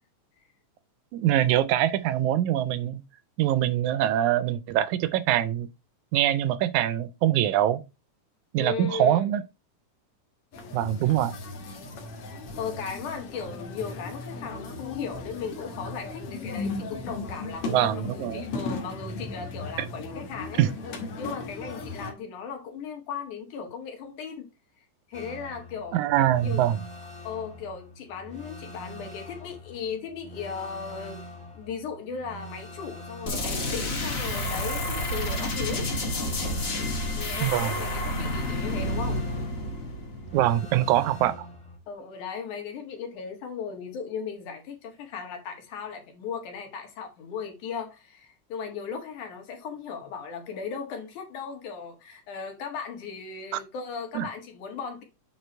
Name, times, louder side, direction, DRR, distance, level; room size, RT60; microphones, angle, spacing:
voice 1, 1.1-3.0 3.4-5.7 6.1-7.8 8.5-9.4 10.7-11.4 17.6-18.4 20.6-20.7 25.9-26.8 37.4-37.7 40.3-41.5 54.1-54.3, right 12 dB, 80° right, 1.9 m, -23 dB
voice 2, 8.6-9.2 12.6-20.6 21.2-24.5 24.8-26.0 26.4-26.6 27.2-31.2 31.5-35.9 37.2-39.2 41.9-55.0, left 6 dB, 80° left, 3.1 m, -37 dB
sound 1, 10.5-22.1, left 3 dB, 55° left, 2.0 m, -37 dB
sound 2, 25.1-41.8, left 1 dB, 5° left, 1.3 m, -44 dB
sound 3, 33.3-40.8, left 1 dB, 40° left, 1.4 m, -30 dB
8.2 x 4.0 x 4.4 m
omnidirectional pair, 3.5 m